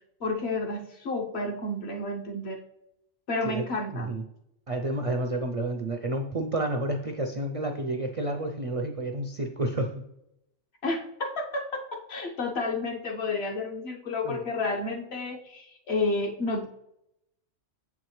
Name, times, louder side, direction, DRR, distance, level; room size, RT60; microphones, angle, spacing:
voice 1, 0.2-2.6 3.3-4.1 10.8-16.7, left 2 dB, 60° left, 2 dB, 1.1 m, -31 dB
voice 2, 3.9-4.2 4.7-9.9 14.2-14.4, right 1 dB, 50° right, 4 dB, 0.4 m, -30 dB
7.4 x 4.7 x 3.1 m, 0.83 s
omnidirectional pair, 1.2 m